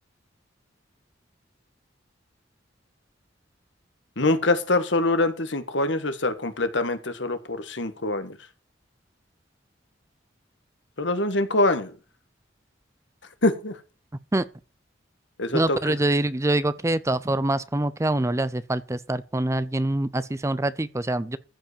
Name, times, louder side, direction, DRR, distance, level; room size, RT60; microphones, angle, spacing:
voice 1, 4.2-8.3 11.0-11.9 13.4-13.7 15.4-15.8, left 2 dB, 65° left, 1.7 m, -24 dB
voice 2, 15.5-21.4, right 1 dB, 15° right, 0.6 m, -25 dB
14.5 x 5.4 x 6.8 m
head